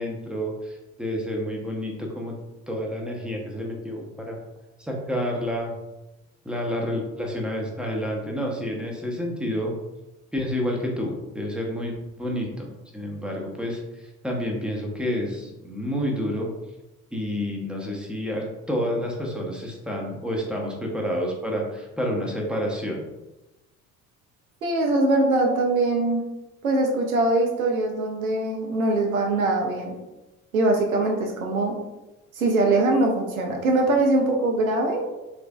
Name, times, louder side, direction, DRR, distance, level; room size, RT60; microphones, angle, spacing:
voice 1, 0.0-2.3 2.7-4.4 4.8-5.7 6.4-9.8 10.3-12.7 12.9-16.5 17.1-23.0, equal, ahead, -1 dB, 0.7 m, -29 dB
voice 2, 24.6-26.2 26.6-30.0 30.5-31.8 32.4-35.0, right 2 dB, 80° right, 1 dB, 0.7 m, -22 dB
3.3 x 3.2 x 2.4 m, 1.0 s
figure-of-eight pair, 60°, 41 cm